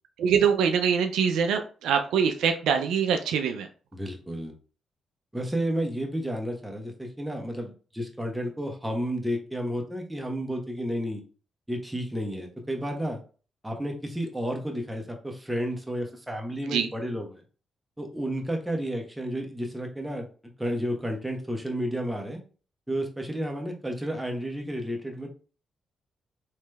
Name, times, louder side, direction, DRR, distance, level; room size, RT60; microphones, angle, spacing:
voice 1, 0.2-3.7 16.6-16.9, right 7 dB, 85° right, 6 dB, 0.3 m, -24 dB
voice 2, 3.9-4.5 5.3-11.2 11.7-13.2 13.6-17.4 18.0-20.3 20.6-22.4 22.9-25.3, equal, 10° right, 2 dB, 0.9 m, -31 dB
3.1 x 3.1 x 2.2 m, 0.38 s
supercardioid pair, 55°, 0 cm